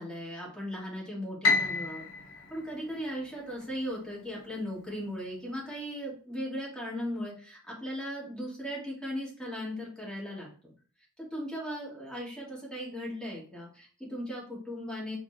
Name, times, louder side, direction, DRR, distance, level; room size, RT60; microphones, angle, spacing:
voice 1, 0.0-2.0 2.5-10.7 11.3-15.2, equal, 5° left, -5 dB, 1.2 m, -37 dB
Piano, 1.4-3.7, left 3 dB, 80° left, 0.7 m, -30 dB
3.4 x 2.1 x 2.4 m, 0.41 s
head